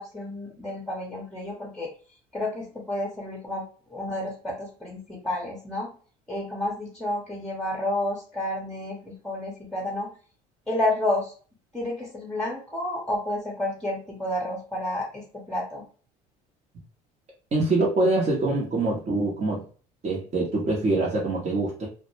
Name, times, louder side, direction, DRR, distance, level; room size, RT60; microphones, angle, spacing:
voice 1, 0.0-1.9 2.3-3.6 3.9-5.9 6.3-10.1 10.7-11.3 11.7-15.8, left 1 dB, ahead, -2 dB, 0.8 m, -30 dB
voice 2, 17.5-19.6 20.0-21.9, right 2 dB, 35° right, -4 dB, 0.8 m, -24 dB
2.1 x 2.1 x 3.1 m, 0.40 s
hypercardioid pair, 70°, 20 cm